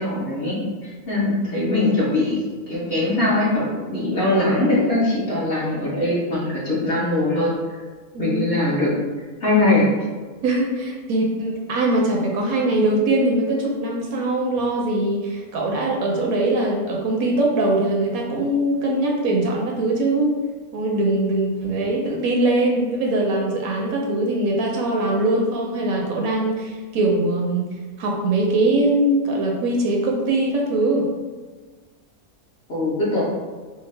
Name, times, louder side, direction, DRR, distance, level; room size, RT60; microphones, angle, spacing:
voice 1, 0.0-7.8 8.2-9.9 32.7-33.2, left 2 dB, 45° left, -8 dB, 1.2 m, -22 dB
voice 2, 8.1-8.6 10.4-20.3 20.7-27.6 28.0-31.1, right 2 dB, 70° right, -1 dB, 1.1 m, -22 dB
4.5 x 2.0 x 3.2 m, 1.4 s
omnidirectional pair, 1.6 m